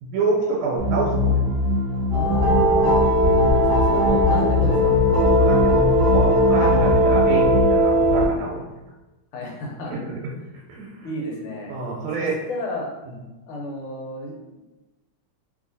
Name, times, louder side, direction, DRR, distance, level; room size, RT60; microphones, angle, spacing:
voice 1, 0.0-1.4 5.4-8.6 9.9-10.1 10.7-10.9 11.7-12.4, right 3 dB, 80° right, -3 dB, 1.5 m, -27 dB
sound 1, 0.8-7.6, left 2 dB, 35° left, 0.7 m, -23 dB
voice 2, 2.1-3.1 3.7-4.9 6.5-6.9 9.3-9.9 11.0-11.8 12.2-12.9 13.5-14.6, left 1 dB, 90° left, -2 dB, 1.7 m, -32 dB
sound 2, 2.1-8.3, equal, 30° right, 1.2 m, -19 dB
3.1 x 3.1 x 2.6 m, 1.0 s
omnidirectional pair, 2.4 m